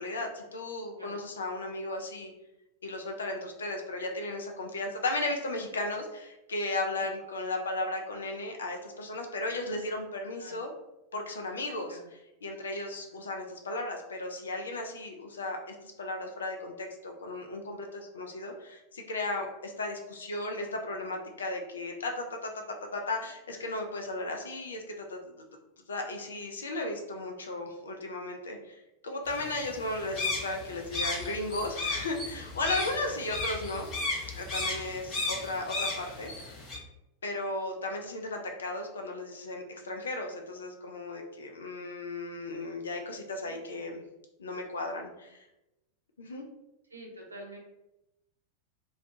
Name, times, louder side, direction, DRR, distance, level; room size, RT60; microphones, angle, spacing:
voice 1, 0.0-2.3 2.8-10.7 11.1-12.0 12.4-25.3 25.9-28.8 29.0-33.9 34.4-36.5 37.2-44.0 44.4-45.4 46.2-46.5, left 2 dB, 70° left, 3 dB, 0.4 m, -35 dB
sound 1, 29.3-36.8, left 3 dB, 25° left, 0.7 m, -35 dB
voice 2, 43.5-43.8 46.9-47.6, right 1 dB, 80° right, 0 dB, 0.5 m, -47 dB
2.2 x 2.1 x 2.6 m, 0.93 s
figure-of-eight pair, 90°, 0 cm